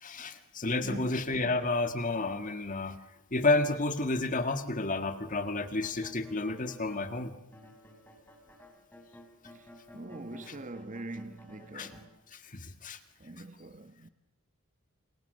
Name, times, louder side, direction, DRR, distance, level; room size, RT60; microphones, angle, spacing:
voice 1, 0.0-3.0 3.3-7.3 11.7-11.9 12.3-13.0, left 2 dB, 35° left, 1.9 m, -31 dB
voice 2, 0.8-1.2 9.5-9.7 9.9-12.1 13.2-14.1, right 2 dB, 35° right, 1.3 m, -43 dB
sound 1, 5.6-7.2 7.5-12.0, left 1 dB, 10° left, 5.4 m, -54 dB
28.5 x 28.5 x 6.7 m
head